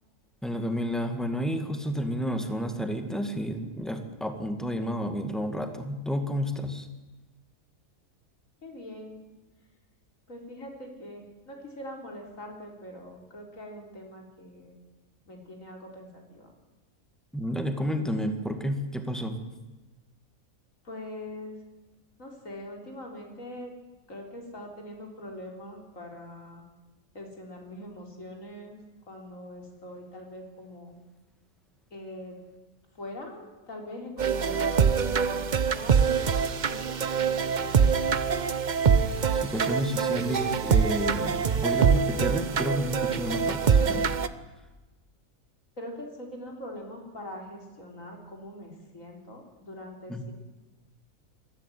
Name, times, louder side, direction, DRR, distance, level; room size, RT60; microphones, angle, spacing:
voice 1, 0.4-6.9 17.3-19.4 39.3-44.0 50.1-50.3, equal, ahead, 6 dB, 1.9 m, -31 dB
voice 2, 8.6-9.2 10.3-14.8 15.3-16.5 20.8-21.6 22.2-23.7 24.1-26.6 27.1-28.8 29.1-31.0 31.9-32.4 32.9-36.4 36.7-36.8 37.1-38.4 45.8-50.3, left 1 dB, 65° left, 1 dB, 4.3 m, -43 dB
sound 1, 34.2-44.3, right 6 dB, 40° right, 0.7 m, -24 dB
21.5 x 14.5 x 9.4 m, 1.1 s
omnidirectional pair, 1.5 m